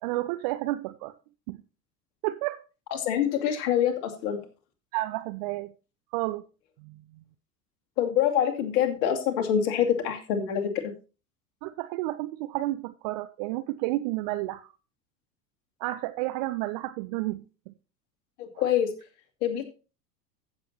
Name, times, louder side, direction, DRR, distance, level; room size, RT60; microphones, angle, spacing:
voice 1, 0.0-1.1 1.5-1.6 2.2-2.6 4.9-5.7 6.1-6.5 6.8-7.0 11.6-14.7 15.8-17.7, right 18 dB, 30° right, 0.4 m, -31 dB
voice 2, 2.9-4.4 8.0-10.8 18.4-18.9 19.4-19.7, left 9 dB, 50° left, 2.5 m, -25 dB
15.0 x 7.5 x 2.9 m
figure-of-eight pair, 80°, 48 cm